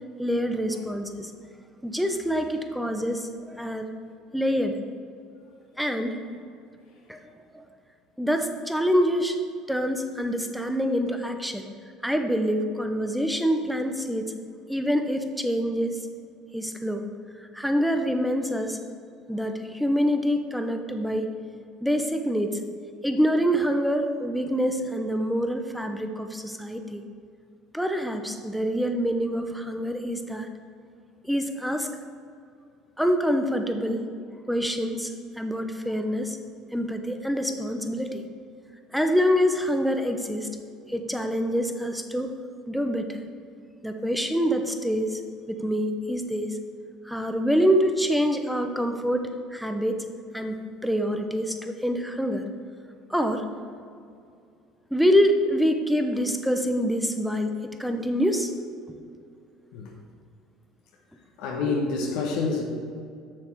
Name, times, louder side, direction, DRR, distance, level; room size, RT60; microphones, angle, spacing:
voice 1, 0.2-1.3 1.8-3.8 4.3-4.8 5.8-6.2 7.1-7.2 7.5-7.6 8.2-9.4 9.7-11.7 12.0-14.3 14.7-16.1 16.5-17.0 17.4-18.8 19.3-21.3 21.8-22.6 23.0-27.0 27.7-30.5 31.2-31.9 33.0-34.0 34.5-36.4 36.7-38.2 38.9-40.5 40.9-42.3 42.7-43.2 43.8-45.2 45.5-46.6 47.0-50.0 50.3-52.5 53.1-53.4 54.9-58.5, equal, ahead, 5 dB, 0.9 m, -26 dB
voice 2, 61.4-62.6, left 4 dB, 75° left, 0 dB, 1.2 m, -27 dB
7.6 x 6.4 x 4.6 m, 2.4 s
supercardioid pair, 85°, 0 cm